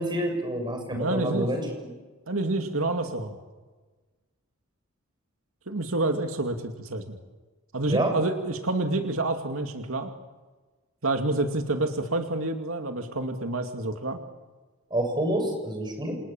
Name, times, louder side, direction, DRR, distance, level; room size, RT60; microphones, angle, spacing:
voice 1, 0.0-1.6 7.9-8.2 14.9-16.2, right 1 dB, 20° right, 4 dB, 7.2 m, -27 dB
voice 2, 0.9-1.5 2.3-3.4 5.7-7.2 7.7-10.1 11.0-14.2, right 2 dB, 85° right, 5 dB, 2.5 m, -28 dB
29.5 x 28.0 x 7.3 m, 1.3 s
head